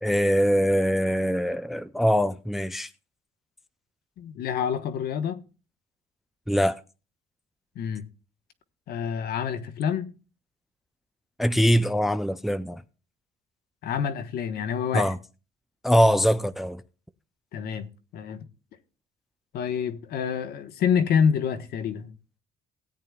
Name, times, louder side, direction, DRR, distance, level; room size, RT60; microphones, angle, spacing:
voice 1, 0.0-2.9 6.5-6.8 11.4-12.8 14.9-15.2 15.8-16.8, equal, ahead, 0.4 m, -22 dB
voice 2, 4.2-5.4 7.7-8.0 8.9-10.1 13.8-15.1 17.5-17.9 18.1-18.4 19.5-22.1, left 7 dB, 70° left, 1.2 m, -27 dB
17.5 x 8.9 x 2.3 m
cardioid pair, 110°, 17 cm